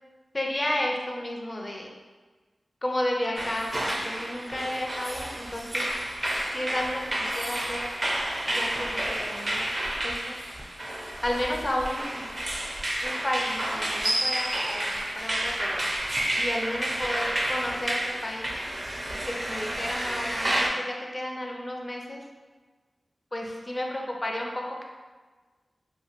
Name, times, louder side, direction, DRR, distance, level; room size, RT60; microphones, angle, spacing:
voice 1, 0.3-1.9 2.8-5.9 6.5-7.9 8.5-9.7 10.0-10.4 11.2-12.3 13.0-15.9 16.3-18.5 19.1-22.3 23.3-24.8, left 1 dB, 35° left, 0 dB, 0.5 m, -32 dB
sound 1, 3.4-20.7, right 1 dB, 40° right, 0.4 m, -30 dB
2.8 x 2.5 x 2.5 m, 1.4 s
cardioid pair, 45°, 0 cm